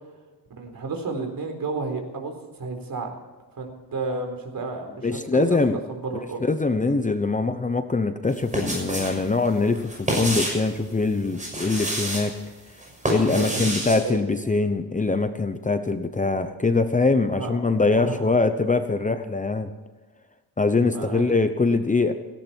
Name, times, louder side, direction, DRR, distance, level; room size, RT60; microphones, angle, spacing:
voice 1, 0.6-3.1 3.6-5.1 5.3-5.6 5.9-6.4 13.3-14.2 17.4-17.6 18.0-18.3 20.9-21.3, right 3 dB, 55° right, 4 dB, 4.2 m, -31 dB
voice 2, 5.0-5.8 6.4-12.3 13.1-19.7 20.6-22.1, left 3 dB, 20° left, 9 dB, 0.8 m, -23 dB
sound 1, 8.3-9.2 9.5-10.7 11.3-12.3 12.8-14.0, right 1 dB, 20° right, 6.3 m, -28 dB
17.5 x 17.0 x 4.5 m, 1.3 s
wide cardioid pair, 155°, 40 cm